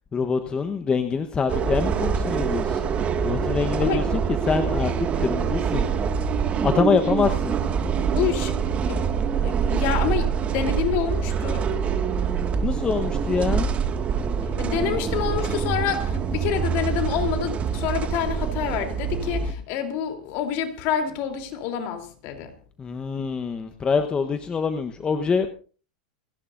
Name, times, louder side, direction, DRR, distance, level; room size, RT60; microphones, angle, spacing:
voice 1, 0.1-2.8 3.2-5.9 6.6-7.6 12.6-13.7 22.8-25.5, left 5 dB, 20° left, 1.1 m, -25 dB
sound 1, 1.5-19.5, right 6 dB, 30° right, 1.9 m, -25 dB
voice 2, 8.1-8.5 8.9-9.1 9.4-11.7 14.6-22.5, left 9 dB, 50° left, 3.3 m, -27 dB
29.0 x 11.0 x 2.6 m
hypercardioid pair, 120°, 5 cm